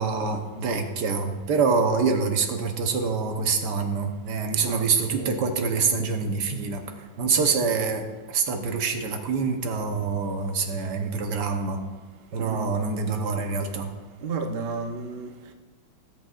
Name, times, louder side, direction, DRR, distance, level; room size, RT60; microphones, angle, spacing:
voice 1, 0.0-6.8 7.2-8.0 8.3-11.8 12.3-13.9, right 5 dB, 60° right, 4 dB, 1.4 m, -25 dB
voice 2, 4.5-5.5 12.4-12.7 14.2-15.3, right 4 dB, 85° right, 5 dB, 0.5 m, -33 dB
17.0 x 8.0 x 2.5 m, 1.3 s
omnidirectional pair, 2.2 m